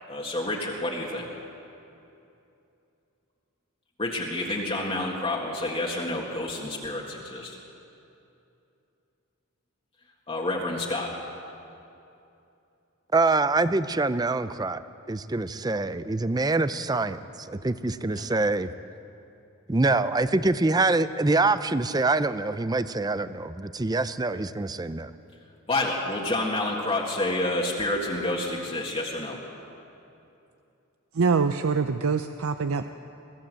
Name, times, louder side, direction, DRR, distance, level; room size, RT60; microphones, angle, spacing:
voice 1, 0.1-1.3 4.0-7.6 10.3-11.1 18.1-18.2 25.7-29.4, left 2 dB, 25° left, -3 dB, 1.8 m, -29 dB
voice 2, 13.1-14.8 15.1-17.2 17.5-18.7 19.7-25.1, right 3 dB, 20° right, 13 dB, 0.5 m, -25 dB
voice 3, 31.1-32.9, right 5 dB, 85° right, 9 dB, 0.6 m, -24 dB
23.5 x 15.5 x 7.6 m, 2.8 s
head